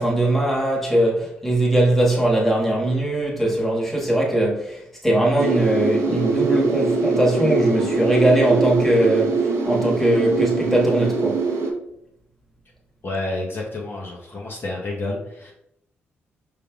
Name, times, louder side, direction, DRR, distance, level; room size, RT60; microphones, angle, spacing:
voice 1, 0.0-11.5, right 1 dB, 5° left, 1.6 m, -20 dB
sound 1, 5.4-11.7, right 3 dB, 70° right, 0.8 m, -22 dB
voice 2, 13.0-15.5, left 2 dB, 45° left, 1.1 m, -29 dB
5.3 x 3.3 x 2.4 m
hypercardioid pair, 45°, 5 cm